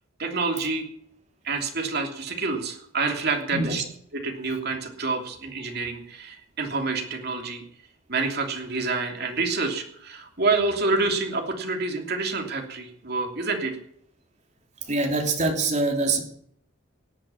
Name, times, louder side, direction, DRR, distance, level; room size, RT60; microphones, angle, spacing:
voice 1, 0.2-0.9 1.4-3.8 4.1-7.6 8.1-13.8, right 3 dB, 50° right, 3 dB, 3.1 m, -27 dB
voice 2, 14.8-16.2, right 2 dB, 35° right, 3 dB, 3.1 m, -24 dB
17.5 x 8.8 x 7.2 m, 0.67 s
head